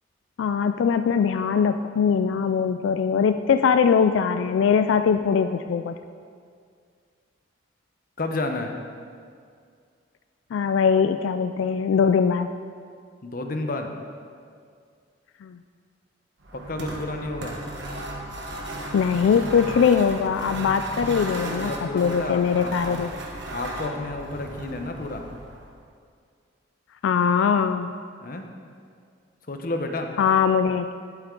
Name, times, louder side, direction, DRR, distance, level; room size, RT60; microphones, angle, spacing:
voice 1, 0.4-5.9 10.5-12.5 15.4-15.6 18.9-23.1 27.0-28.0 30.2-30.9, left 6 dB, 90° left, 9 dB, 0.3 m, -21 dB
voice 2, 8.2-8.7 13.2-13.9 16.5-17.5 21.6-23.0 23.5-25.2 28.2-28.4 29.5-30.1, left 2 dB, 50° left, 4 dB, 0.8 m, -31 dB
sound 1, 16.4-25.8, right 1 dB, 70° right, 1.2 m, -35 dB
11.5 x 8.3 x 3.8 m, 2.2 s
head